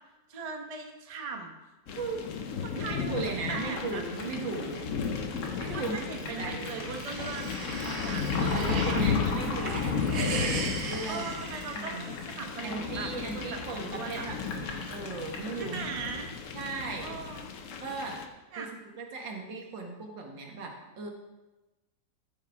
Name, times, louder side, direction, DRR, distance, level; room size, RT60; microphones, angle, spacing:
voice 1, 0.3-1.5 1.9-2.3 2.6-3.1 3.5-4.0 5.7-9.0 11.1-14.3 15.6-16.3 17.0-17.4 18.5-18.7, right 5 dB, 25° right, 3 dB, 0.9 m, -39 dB
sound 1, 1.9-18.3, left 5 dB, 55° left, 1.0 m, -34 dB
voice 2, 2.7-4.9 5.6-7.1 8.4-10.0 10.8-11.3 11.7-16.1 16.5-17.2 17.8-18.2 18.6-18.7 19.0-21.1, right 3 dB, 90° right, 1 dB, 2.3 m, -37 dB
sound 2, 3.5-15.8, left 3 dB, 70° left, 2.1 m, -41 dB
sound 3, 6.3-9.0 9.4-12.3, right 4 dB, 55° right, 1.5 m, -38 dB
14.5 x 5.7 x 4.7 m, 1.1 s
omnidirectional pair, 2.0 m